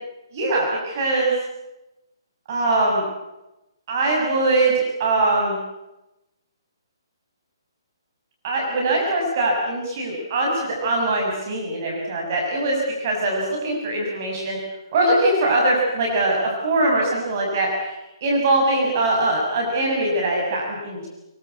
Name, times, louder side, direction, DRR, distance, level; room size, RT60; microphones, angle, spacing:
voice 1, 0.3-1.3 2.5-3.0 3.9-5.6 8.4-14.6 14.9-17.9 18.2-21.1, right 2 dB, 35° right, -1 dB, 6.8 m, -22 dB
24.5 x 23.5 x 8.4 m, 0.96 s
hypercardioid pair, 170°, 2 cm